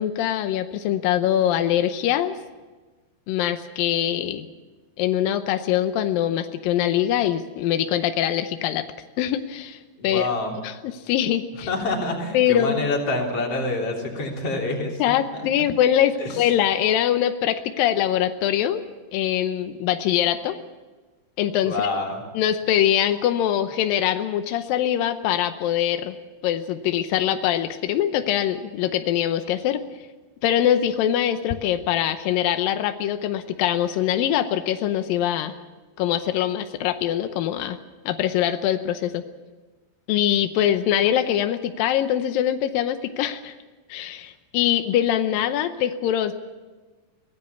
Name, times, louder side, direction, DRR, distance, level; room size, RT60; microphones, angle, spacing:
voice 1, 0.0-2.3 3.3-4.5 5.0-8.8 9.2-10.3 10.6-11.7 12.3-13.0 15.0-18.8 19.1-20.6 21.4-21.8 22.3-26.2 26.4-29.8 30.4-35.5 36.0-37.8 38.1-39.2 40.1-43.5 43.9-46.3, left 11 dB, 90° left, 9 dB, 2.0 m, -23 dB
voice 2, 10.0-10.6 11.7-15.1 15.6-15.7 16.2-16.5 21.6-22.2, left 2 dB, 35° left, 0 dB, 3.7 m, -27 dB
24.5 x 17.0 x 7.0 m, 1.3 s
omnidirectional pair, 5.3 m